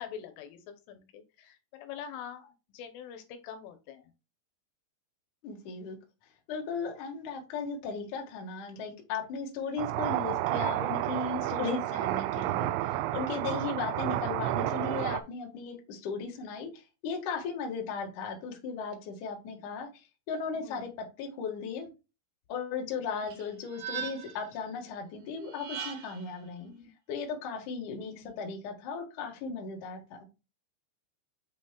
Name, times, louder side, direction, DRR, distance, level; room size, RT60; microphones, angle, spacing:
voice 1, 0.0-4.1 11.2-11.5 20.5-20.9 23.2-23.3 26.7-26.9 28.2-28.3, left 8 dB, 80° left, 8 dB, 3.2 m, -45 dB
voice 2, 5.4-6.0 6.5-19.9 20.3-20.9 21.2-21.9 22.5-26.7 27.1-30.0, left 5 dB, 60° left, 1 dB, 2.1 m, -36 dB
sound 1, 9.8-15.2, right 14 dB, 85° right, 2.7 m, -31 dB
sound 2, 23.3-24.5 25.4-26.3, right 8 dB, 65° right, 2.3 m, -39 dB
7.9 x 6.1 x 2.3 m, 0.29 s
omnidirectional pair, 5.8 m